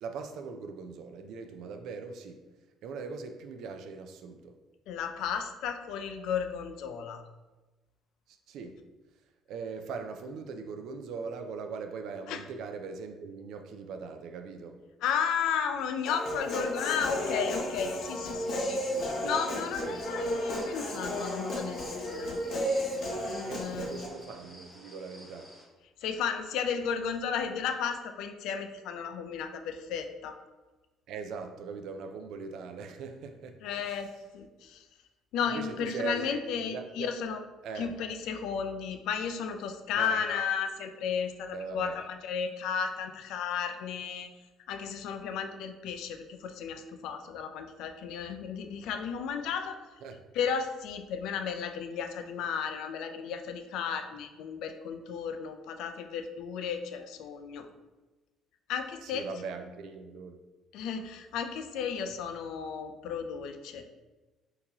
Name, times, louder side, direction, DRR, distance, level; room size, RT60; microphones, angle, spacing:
voice 1, 0.0-2.4 2.8-4.6 8.3-8.8 9.5-14.8 19.8-20.0 23.4-25.5 31.1-33.6 33.9-34.0 35.5-37.1 37.6-37.9 39.9-40.2 41.5-42.0 50.0-50.2 59.0-60.4, right 5 dB, 65° right, 6 dB, 0.4 m, -40 dB
voice 2, 4.9-7.2 12.3-12.4 15.0-22.9 23.3-24.0 26.0-30.4 33.6-34.8 35.3-37.4 37.7-44.3 44.7-49.8 50.3-57.7 58.7-59.3 60.7-63.8, left 7 dB, 75° left, 6 dB, 0.3 m, -34 dB
Human voice, 16.1-24.1, equal, 55° left, 0.7 m, -33 dB
sound 1, 18.0-25.6, equal, 5° left, 0.7 m, -52 dB
3.7 x 2.8 x 2.8 m, 1.2 s
cardioid pair, 160°, 0 cm